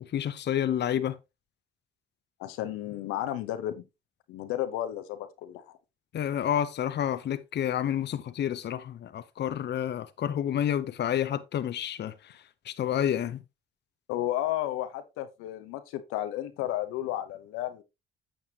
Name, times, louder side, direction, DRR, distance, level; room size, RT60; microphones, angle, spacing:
voice 1, 0.1-1.2 6.1-12.3 12.6-13.4, left 10 dB, 55° left, 0.8 m, -29 dB
voice 2, 2.4-3.8 4.3-5.8 14.1-17.8, left 13 dB, 85° left, 1.0 m, -33 dB
8.7 x 7.1 x 2.9 m
supercardioid pair, 60°, 21 cm